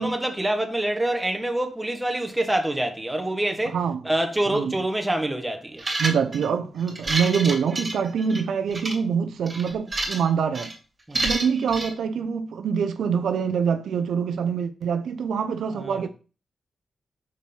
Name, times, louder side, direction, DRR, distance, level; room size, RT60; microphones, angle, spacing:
voice 1, 0.0-3.8 4.0-5.8 11.1-11.2 15.7-16.1, right 1 dB, 10° right, 1.3 m, -26 dB
sound 1, 5.8-6.4 6.9-8.4 8.7-8.9 9.5-10.3 10.5-10.7 11.1-11.9, right 2 dB, 35° right, 2.8 m, -28 dB
voice 2, 6.0-10.7 11.1-16.1, right 6 dB, 85° right, 0.6 m, -25 dB
5.9 x 4.7 x 5.3 m
cardioid pair, 95°, 0 cm